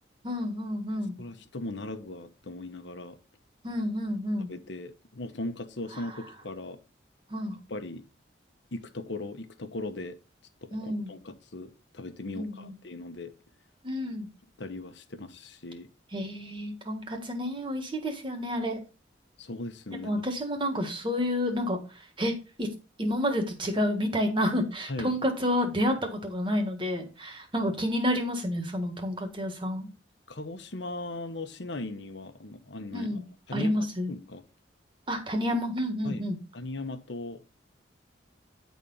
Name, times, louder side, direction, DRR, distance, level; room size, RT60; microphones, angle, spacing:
voice 1, 0.2-1.1 3.6-4.5 6.0-6.1 7.3-7.6 10.7-11.1 12.3-12.7 13.8-14.3 16.1-18.8 19.9-21.8 22.2-22.7 23.0-29.9 32.9-33.2 33.5-34.1 35.1-36.4, equal, 25° right, 1.6 m, -29 dB
voice 2, 1.2-3.2 4.5-6.8 7.7-8.0 8.7-10.2 10.6-13.3 14.6-15.9 19.4-20.1 24.9-25.2 30.3-33.2 33.5-34.4 36.0-36.3 36.5-37.4, left 2 dB, 70° left, 1.1 m, -38 dB
10.0 x 4.2 x 5.5 m
head